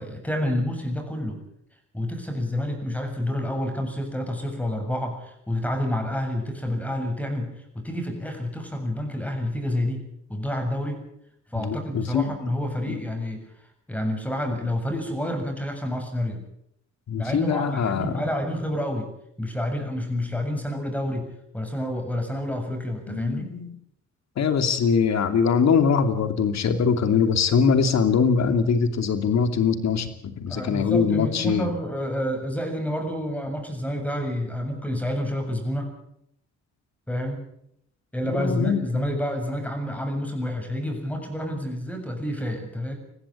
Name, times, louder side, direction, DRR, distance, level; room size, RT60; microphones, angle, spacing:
voice 1, 0.0-1.4 1.9-11.0 11.5-16.4 17.2-19.1 19.4-23.5 30.5-36.0 37.1-37.5 38.1-43.0, left 1 dB, 5° left, 4 dB, 7.2 m, -29 dB
voice 2, 11.6-12.3 17.1-18.2 23.1-23.7 24.4-31.7 38.4-38.8, left 6 dB, 60° left, 9 dB, 2.8 m, -22 dB
21.5 x 15.0 x 8.6 m, 0.74 s
cardioid pair, 90°, 30 cm